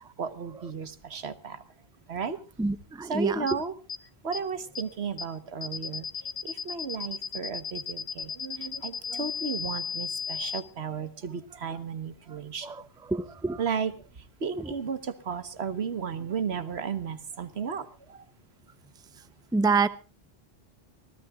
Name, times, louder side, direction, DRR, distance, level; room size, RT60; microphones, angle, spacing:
voice 1, 0.2-1.6 2.1-2.4 3.1-3.7 4.2-12.7 13.5-13.9 14.4-18.2, right 6 dB, 85° right, 1.4 m, -34 dB
voice 2, 2.6-3.5 12.6-12.8 13.1-13.6 14.6-14.7 19.5-19.9, right 4 dB, 5° right, 0.6 m, -27 dB
sound 1, 3.5-3.6 3.9-4.0 4.3-4.4 4.8-4.9 5.2-5.3 5.6-10.6, left 6 dB, 55° left, 1.4 m, -34 dB
25.5 x 16.5 x 2.4 m
omnidirectional pair, 1.1 m